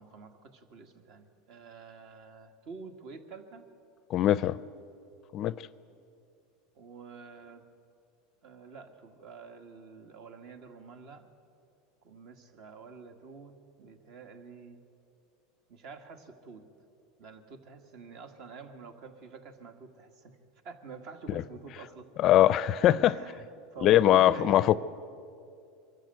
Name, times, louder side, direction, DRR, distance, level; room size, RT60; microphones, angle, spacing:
voice 1, 0.0-3.7 6.8-7.6 8.4-11.3 12.0-14.8 15.7-16.7 17.2-20.4 20.6-22.3 23.0-23.4 23.7-24.7, right 4 dB, 55° right, 2.0 m, -47 dB
voice 2, 4.1-4.6 5.3-5.5 22.2-23.2 23.8-24.8, left 12 dB, 45° left, 0.5 m, -21 dB
23.5 x 13.5 x 9.2 m
supercardioid pair, 130°, 0 cm